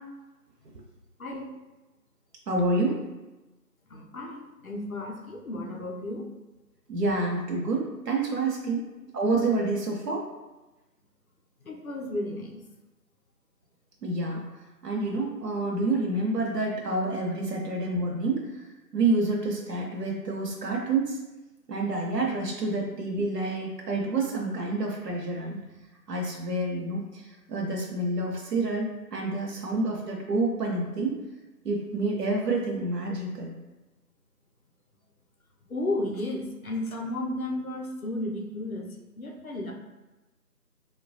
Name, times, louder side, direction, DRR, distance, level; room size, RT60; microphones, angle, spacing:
voice 1, 1.2-1.5 3.9-6.3 8.7-8.8 11.6-12.6 17.5-17.6 35.7-39.7, left 1 dB, 60° left, 0 dB, 0.5 m, -33 dB
voice 2, 2.5-3.0 6.9-8.9 9.1-10.3 14.0-14.5 14.8-18.6 18.9-21.2 21.7-25.6 26.1-31.2 31.6-33.5, right 2 dB, 75° right, -1 dB, 0.7 m, -28 dB
2.9 x 2.2 x 2.6 m, 1.1 s
figure-of-eight pair, 175°, 48 cm